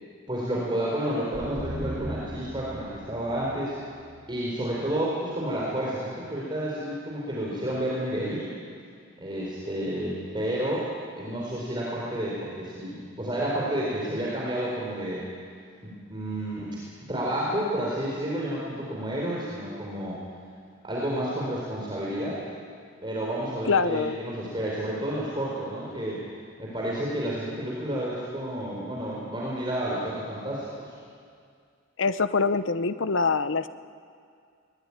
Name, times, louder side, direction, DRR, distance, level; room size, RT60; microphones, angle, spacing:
voice 1, 0.3-3.8 4.3-8.5 9.2-10.9 11.2-15.3 15.8-16.8 17.1-20.2 20.8-22.4 23.0-26.2 26.6-30.9, right 1 dB, 25° right, -5 dB, 4.2 m, -30 dB
sound 1, 1.3-4.9, equal, 55° right, 3.3 m, -37 dB
voice 2, 23.7-24.2 32.0-33.7, left 4 dB, 80° left, 12 dB, 0.9 m, -24 dB
22.5 x 19.5 x 9.9 m, 2.2 s
head